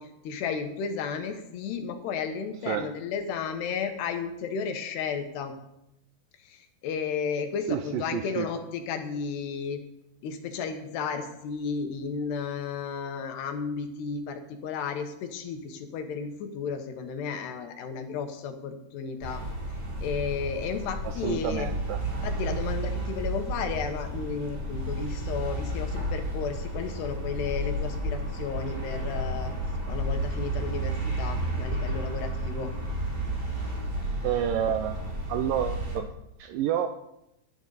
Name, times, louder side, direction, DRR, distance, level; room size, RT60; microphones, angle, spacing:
voice 1, 0.0-5.5 6.4-9.8 10.2-19.4 20.0-21.7 22.2-29.5 29.9-32.7, left 6 dB, 85° left, 6 dB, 3.5 m, -33 dB
voice 2, 7.7-8.5 21.0-22.0 34.2-36.9, right 10 dB, 80° right, 8 dB, 2.0 m, -29 dB
sound 1, 19.2-36.0, right 1 dB, 25° right, 4.4 m, -32 dB
19.5 x 11.0 x 4.1 m, 0.83 s
omnidirectional pair, 4.6 m